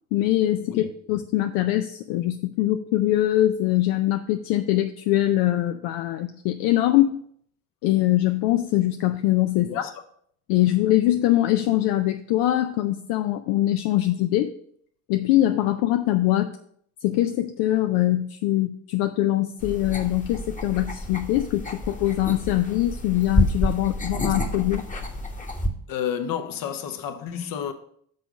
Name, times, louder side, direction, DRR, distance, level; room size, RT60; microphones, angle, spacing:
voice 1, 0.1-7.2 7.8-9.9 10.5-14.5 15.1-16.5 17.0-24.8, left 14 dB, 75° left, 0.6 m, -23 dB
voice 2, 9.5-9.9 25.9-27.7, left 8 dB, 60° left, 1.0 m, -31 dB
sound 1, 19.6-25.7, left 1 dB, 20° left, 1.1 m, -28 dB
6.8 x 3.9 x 6.1 m
supercardioid pair, 75°, 38 cm